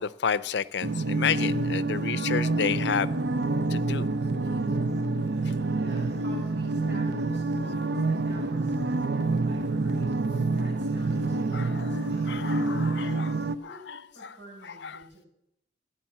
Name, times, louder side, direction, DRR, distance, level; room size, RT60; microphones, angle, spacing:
voice 1, 0.0-3.1 3.7-4.1 5.4-5.5 11.5-15.1, left 7 dB, 65° left, 17 dB, 0.5 m, -32 dB
sound 1, 0.8-13.6, right 2 dB, 65° right, 0.6 m, -27 dB
voice 2, 4.4-4.9 5.7-10.1 10.5-12.5 13.0-15.3, right 2 dB, 90° right, -2 dB, 6.9 m, -48 dB
14.0 x 10.0 x 7.2 m, 0.84 s
head